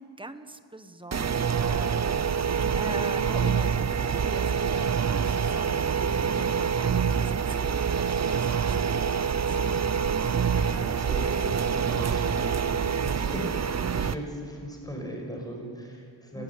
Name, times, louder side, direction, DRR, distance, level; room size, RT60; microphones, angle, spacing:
voice 1, 0.0-9.7 16.3-16.4, right 2 dB, 10° right, 9 dB, 1.2 m, -43 dB
sound 1, 1.1-14.1, right 7 dB, 35° right, 0.7 m, -26 dB
Wind instrument woodwind instrument, 7.2-13.5, left 13 dB, 75° left, 1.5 m, -50 dB
voice 2, 10.4-16.4, equal, 10° left, 1 dB, 5.9 m, -38 dB
29.5 x 15.0 x 9.5 m, 2.2 s
wide cardioid pair, 145°, 44 cm